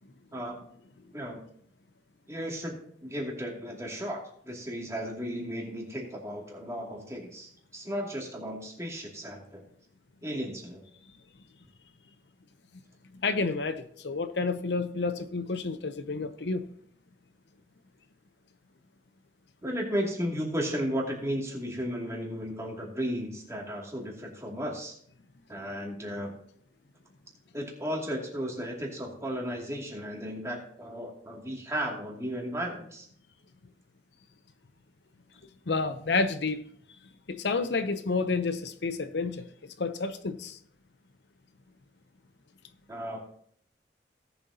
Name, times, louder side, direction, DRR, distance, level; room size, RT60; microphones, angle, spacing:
voice 1, 2.3-9.6 10.2-10.8 19.6-25.0 25.5-26.3 27.5-33.1 42.9-43.2, equal, 15° right, 2.4 m, -34 dB
voice 2, 13.1-16.7 35.7-36.7 37.3-40.6, left 4 dB, 75° left, 0.7 m, -30 dB
17.5 x 7.0 x 2.8 m
head